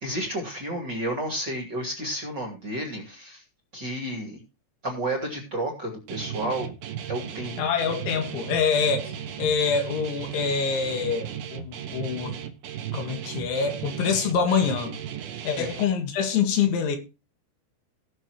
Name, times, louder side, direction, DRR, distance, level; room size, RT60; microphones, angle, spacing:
voice 1, 0.0-3.4 3.7-4.4 4.8-6.7 7.1-7.5 15.6-15.7, right 1 dB, 30° right, 2.3 m, -31 dB
Guitar, 6.1-15.8, right 9 dB, 65° right, 2.4 m, -36 dB
voice 2, 7.6-12.4 12.9-15.0 15.4-17.0, left 6 dB, 85° left, 4.3 m, -25 dB
18.5 x 6.7 x 3.1 m
omnidirectional pair, 5.2 m